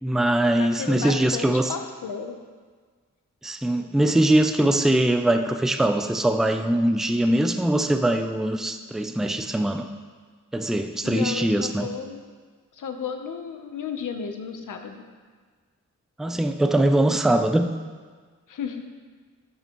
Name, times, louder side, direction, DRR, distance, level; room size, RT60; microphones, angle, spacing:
voice 1, 0.0-1.7 3.4-9.9 10.5-11.9 16.2-17.7, right 1 dB, ahead, 6 dB, 0.4 m, -22 dB
voice 2, 0.6-2.4 11.0-12.2 12.8-15.0 18.5-18.8, left 6 dB, 85° left, 5 dB, 0.9 m, -33 dB
12.0 x 6.8 x 3.0 m, 1.5 s
wide cardioid pair, 130°, 31 cm